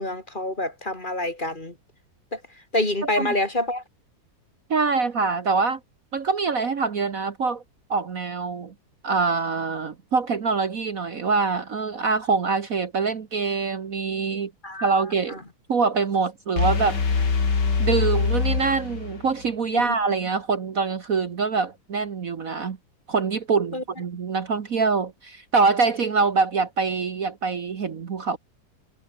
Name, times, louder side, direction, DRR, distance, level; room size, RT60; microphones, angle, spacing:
voice 1, 0.0-1.7 2.3-2.4 2.7-3.8 14.6-14.9 15.3-15.4 19.7-19.9 23.7-23.8, left 1 dB, 25° left, 3.6 m, -27 dB
voice 2, 3.0-3.3 4.7-5.8 6.1-7.6 7.9-8.7 9.0-14.5 14.8-15.4 15.7-17.0 17.8-22.8 23.1-28.4, right 4 dB, 50° right, 1.7 m, -24 dB
sound 1, 16.6-19.5, left 5 dB, 65° left, 3.3 m, -23 dB
omnidirectional pair, 2.0 m